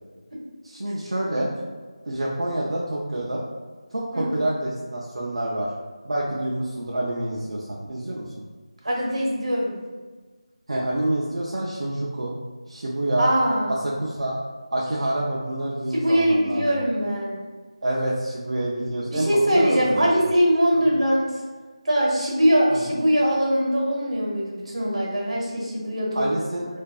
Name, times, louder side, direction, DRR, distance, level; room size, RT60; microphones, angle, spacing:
voice 1, 0.6-1.5 2.1-3.4 3.9-5.7 6.0-8.4 10.7-12.3 12.7-13.3 13.7-14.4 14.7-16.8 17.8-20.1 20.7-20.9 22.7-23.0 26.1-26.7, right 1 dB, 70° right, -5 dB, 0.4 m, -27 dB
voice 2, 8.8-9.8 13.2-13.7 15.0-15.1 15.9-17.4 19.1-21.4 21.8-26.4, equal, 90° right, -3 dB, 1.0 m, -22 dB
2.4 x 2.3 x 2.3 m, 1.4 s
figure-of-eight pair, 175°, 3 cm